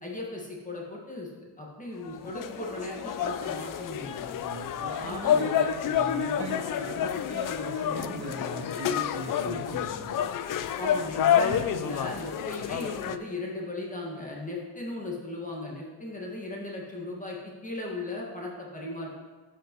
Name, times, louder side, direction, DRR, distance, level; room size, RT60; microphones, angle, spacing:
voice 1, 0.0-1.3 1.6-4.3 5.0-5.4 9.4-9.6 10.8-19.1, left 2 dB, 20° left, -3 dB, 1.7 m, -37 dB
sound 1, 2.0-13.2, left 9 dB, 55° left, 0.4 m, -29 dB
voice 2, 4.4-10.1 12.4-12.5, right 1 dB, 35° right, -5 dB, 2.7 m, -38 dB
12.5 x 5.2 x 3.0 m, 1.3 s
cardioid pair, 120°, 41 cm